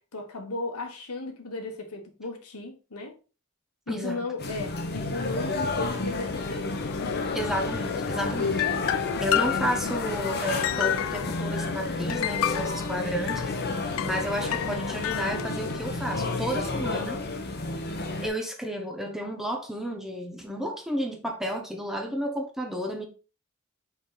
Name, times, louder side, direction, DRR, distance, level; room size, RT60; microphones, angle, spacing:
voice 1, 0.0-3.1 3.9-6.7 16.1-16.8, left 2 dB, 85° left, 1.5 m, -35 dB
voice 2, 3.9-4.3 7.3-17.2 18.2-23.0, equal, ahead, 1.0 m, -32 dB
sound 1, 4.4-18.3, left 2 dB, 45° left, 1.0 m, -31 dB
sound 2, 5.3-15.8, left 10 dB, 65° left, 0.3 m, -32 dB
5.5 x 4.7 x 4.0 m
head